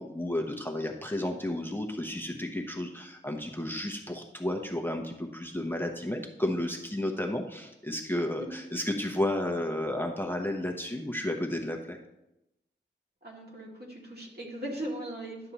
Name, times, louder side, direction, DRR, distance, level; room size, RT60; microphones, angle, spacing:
voice 1, 0.0-12.0, left 1 dB, 10° left, 2 dB, 0.8 m, -32 dB
voice 2, 13.2-15.5, right 1 dB, 50° right, -3 dB, 2.2 m, -39 dB
11.0 x 6.7 x 2.9 m, 0.89 s
wide cardioid pair, 55°, 20 cm